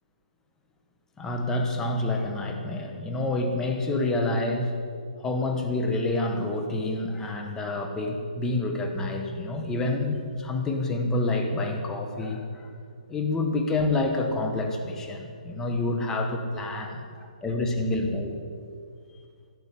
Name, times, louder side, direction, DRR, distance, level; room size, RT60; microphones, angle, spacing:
voice 1, 1.2-4.7 5.2-12.7 13.1-18.4, left 2 dB, 10° left, 4 dB, 1.3 m, -28 dB
15.5 x 6.9 x 9.9 m, 2.2 s
hypercardioid pair, 160°, 4 cm